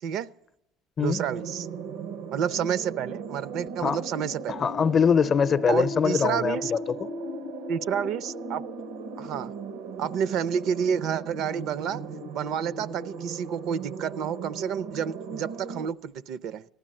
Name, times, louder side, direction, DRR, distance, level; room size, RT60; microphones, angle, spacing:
voice 1, 1.0-1.7 2.3-4.6 5.7-6.7 7.7-8.6 9.2-9.5 10.0-12.0 12.3-16.7, right 8 dB, 70° right, 0.5 m, -29 dB
sound 1, 1.1-15.9, right 3 dB, 90° right, 0.9 m, -37 dB
voice 2, 4.5-7.1, left 6 dB, 45° left, 0.6 m, -23 dB
14.5 x 11.0 x 7.6 m
supercardioid pair, 80°, 0 cm